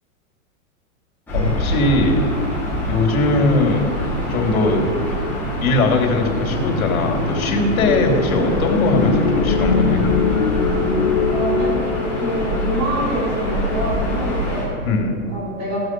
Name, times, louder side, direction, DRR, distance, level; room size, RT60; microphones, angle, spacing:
voice 1, 1.3-2.2 2.9-3.8 4.3-4.8 5.6-10.0 14.8-15.2, left 2 dB, 80° left, 2 dB, 3.2 m, -19 dB
Gull seagull / Ocean, 1.3-14.7, equal, 5° left, 2.6 m, -25 dB
sound 1, 6.0-14.3, left 6 dB, 50° left, 1.1 m, -23 dB
voice 2, 11.3-14.7 15.3-15.8, right 1 dB, 25° right, -5 dB, 4.0 m, -26 dB
15.5 x 8.0 x 6.3 m, 2.4 s
supercardioid pair, 175°, 41 cm